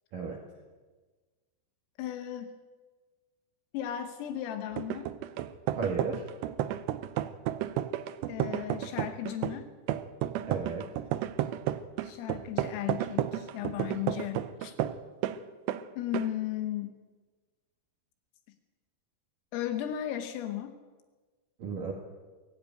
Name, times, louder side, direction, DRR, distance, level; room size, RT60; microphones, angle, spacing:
voice 1, 2.0-2.6 3.7-5.1 8.3-9.7 12.0-14.7 16.0-17.0 19.5-20.8, left 11 dB, 85° left, 8 dB, 3.9 m, -35 dB
sound 1, 4.7-15.4 15.7-15.8 16.1-16.3, right 12 dB, 80° right, 2.5 m, -32 dB
voice 2, 5.7-6.2 10.5-10.9 21.6-21.9, right 5 dB, 50° right, 0 dB, 3.0 m, -34 dB
22.5 x 17.0 x 9.3 m, 1.3 s
omnidirectional pair, 5.9 m